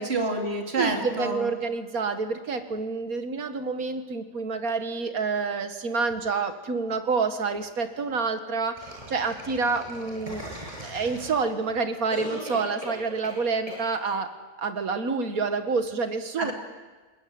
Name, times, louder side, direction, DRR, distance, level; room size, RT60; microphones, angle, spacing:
voice 1, 0.0-1.5 16.4-16.5, right 2 dB, 45° right, 3 dB, 3.0 m, -28 dB
voice 2, 0.8-10.4 10.8-14.3 14.6-16.5, right 4 dB, 75° right, 9 dB, 2.2 m, -28 dB
sound 1, 8.8-11.6 12.1-13.4 13.7-13.8, right 1 dB, 25° right, 7.9 m, -39 dB
21.0 x 20.5 x 9.5 m, 1.3 s
omnidirectional pair, 1.5 m